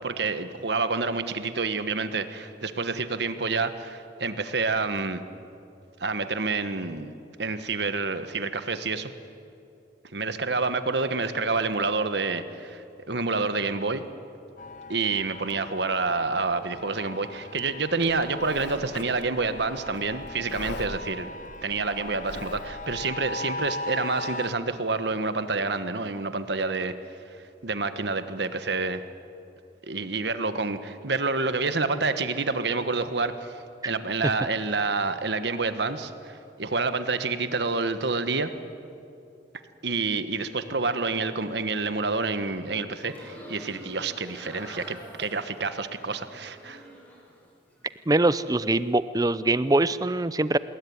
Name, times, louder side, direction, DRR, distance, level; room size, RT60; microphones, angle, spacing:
voice 1, 0.0-5.2 6.0-7.1 7.4-9.1 10.1-14.1 14.9-21.3 21.6-26.9 27.6-29.0 29.8-33.6 33.8-38.5 39.8-46.8, right 3 dB, 65° right, 10 dB, 1.4 m, -28 dB
sound 1, 14.6-24.5, left 2 dB, 45° left, 0.6 m, -39 dB
Livestock farm animals working animals, 18.0-23.1, left 2 dB, 75° left, 1.8 m, -42 dB
sound 2, 42.9-47.4 47.7-48.4, equal, 10° left, 7.5 m, -47 dB
voice 2, 48.1-50.6, right 2 dB, 20° right, 15 dB, 0.6 m, -23 dB
26.0 x 21.0 x 9.6 m, 2.7 s
head